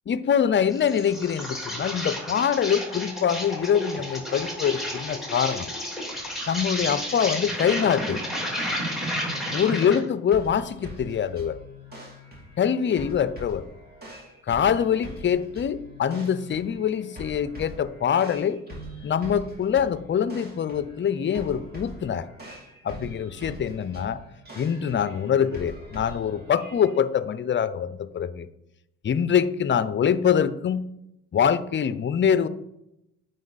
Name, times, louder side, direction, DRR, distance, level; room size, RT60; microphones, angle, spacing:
voice 1, 0.1-5.7 6.5-8.2 9.5-11.6 12.6-13.7 14.5-18.6 19.0-22.2 22.8-24.2 24.6-28.5 29.0-30.9 31.3-32.5, left 8 dB, 40° left, 15 dB, 0.6 m, -24 dB
Insect, 0.7-10.1, equal, ahead, 3.0 m, -31 dB
sound 1, 10.3-27.0, equal, 30° right, 2.9 m, -43 dB
9.1 x 5.4 x 4.0 m, 0.85 s
cardioid pair, 90°, 30 cm